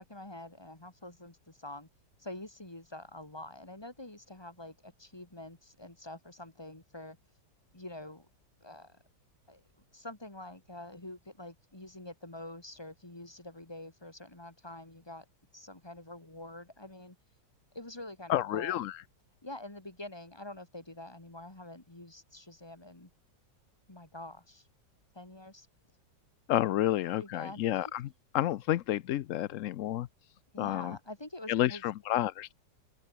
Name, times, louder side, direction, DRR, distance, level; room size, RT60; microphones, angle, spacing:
voice 1, 0.0-1.9 2.2-7.2 7.7-8.3 8.6-9.0 9.5-15.3 15.5-17.2 17.7-18.8 19.4-23.1 23.9-24.7 25.1-25.7 27.2-27.6 30.5-31.8, left 1 dB, 15° left, 2.4 m, -46 dB
voice 2, 18.3-18.9 26.5-28.1 28.3-30.1 30.6-31.0 31.5-32.5, left 13 dB, 85° left, 0.7 m, -30 dB
open air
omnidirectional pair, 2.0 m